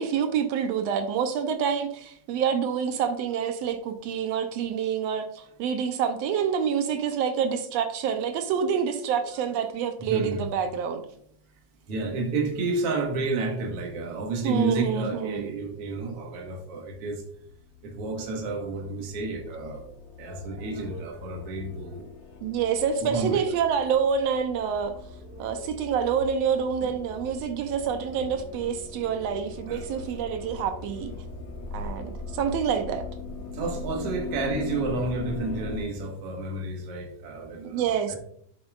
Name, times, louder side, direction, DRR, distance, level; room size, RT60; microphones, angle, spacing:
voice 1, 0.0-11.0 14.4-15.5 22.4-24.9 25.4-31.1 31.7-33.1 37.6-38.2, right 7 dB, 75° right, 8 dB, 1.6 m, -27 dB
voice 2, 10.1-10.5 11.9-17.2 17.8-19.8 20.2-22.1 23.0-23.4 25.3-25.6 29.7-29.8 33.5-38.2, right 3 dB, 55° right, 1 dB, 2.2 m, -31 dB
sound 1, 17.6-35.8, left 4 dB, 70° left, 2.2 m, -40 dB
8.7 x 7.5 x 2.4 m, 0.66 s
omnidirectional pair, 3.4 m